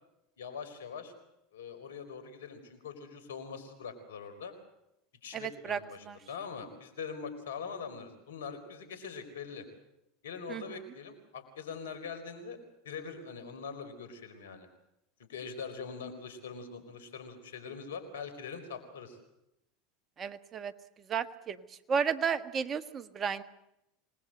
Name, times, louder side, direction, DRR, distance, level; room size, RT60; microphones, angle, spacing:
voice 1, 0.4-1.1 1.5-4.5 5.2-9.7 10.2-12.6 12.8-14.7 15.3-19.2, left 5 dB, 80° left, 10 dB, 4.7 m, -43 dB
voice 2, 5.3-5.8 6.0-6.2 10.5-10.6 20.2-20.7 21.1-21.6 21.9-23.4, right 6 dB, 30° right, 12 dB, 1.5 m, -32 dB
27.0 x 20.0 x 7.9 m, 0.84 s
hypercardioid pair, 95°, 0 cm